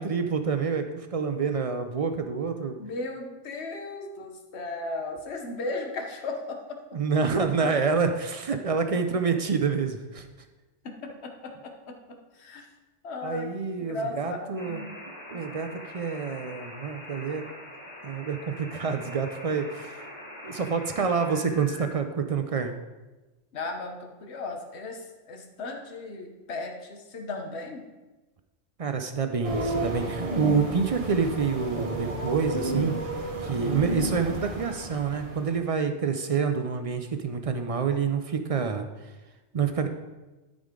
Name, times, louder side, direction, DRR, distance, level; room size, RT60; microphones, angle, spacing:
voice 1, 0.0-2.8 6.9-10.3 13.2-14.8 15.3-17.5 18.0-20.0 20.4-22.7 28.8-33.0 33.4-39.1 39.5-39.9, right 5 dB, 55° right, 7 dB, 0.4 m, -27 dB
voice 2, 2.8-6.8 7.6-7.8 10.8-12.7 13.0-13.5 13.8-14.9 15.5-15.7 23.5-27.8, left 2 dB, 60° left, 4 dB, 1.3 m, -36 dB
sound 1, 14.6-21.9, left 1 dB, 20° left, 2.3 m, -43 dB
sound 2, 29.4-35.6, right 1 dB, 30° right, 1.0 m, -31 dB
12.5 x 5.1 x 3.7 m, 1.1 s
omnidirectional pair, 1.3 m